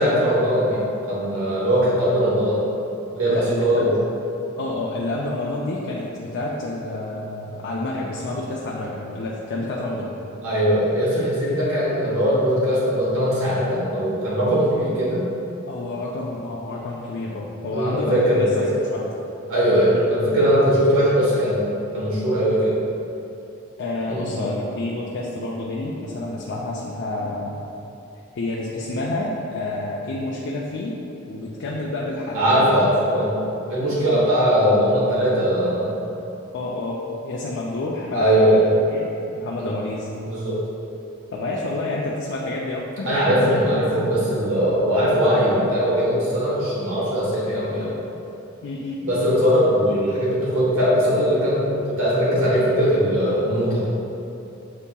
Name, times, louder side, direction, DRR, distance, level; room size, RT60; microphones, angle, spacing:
voice 1, 0.0-2.6 3.1-3.9 10.4-15.2 17.7-18.7 19.5-21.7 21.9-22.8 24.1-24.3 32.3-33.4 33.7-35.9 38.1-38.7 39.6-39.7 40.2-40.7 43.0-47.9 49.0-53.9, equal, 85° right, -7 dB, 1.1 m, -20 dB
voice 2, 3.3-3.9 4.6-10.1 15.7-18.6 18.9-19.1 23.8-27.7 28.3-32.8 34.0-34.3 36.5-38.6 38.9-39.1 39.3-40.1 41.3-43.1 43.5-43.6 48.6-49.1, left 2 dB, 60° left, -4 dB, 0.4 m, -29 dB
6.7 x 2.8 x 2.2 m, 2.8 s
head